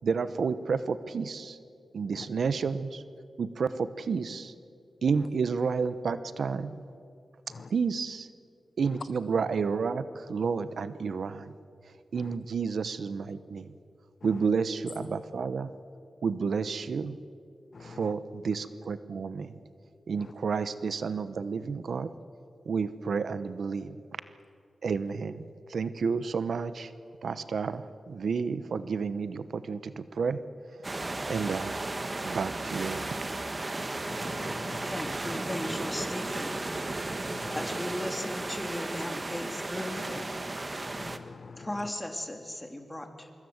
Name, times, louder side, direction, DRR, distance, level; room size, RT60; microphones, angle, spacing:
voice 1, 0.0-1.6 1.9-3.0 3.4-4.5 5.0-6.8 7.7-8.3 8.8-11.5 12.1-13.7 14.2-15.7 16.2-17.2 17.8-19.5 20.1-22.1 22.6-24.2 24.8-26.9 27.2-30.4 31.3-33.2, right 5 dB, 80° right, 13 dB, 0.9 m, -31 dB
voice 2, 17.7-18.1 20.2-20.3 31.3-31.5 34.0-35.1 37.3-37.6 40.9-41.9, left 4 dB, 60° left, 12 dB, 0.7 m, -45 dB
sound 1, 30.8-41.2, right 2 dB, 30° right, 1.7 m, -34 dB
voice 3, 34.9-36.6 37.5-40.2 41.6-43.3, left 1 dB, 15° left, 5 dB, 3.3 m, -37 dB
24.5 x 23.5 x 8.0 m, 2.3 s
cardioid pair, 70°, 0 cm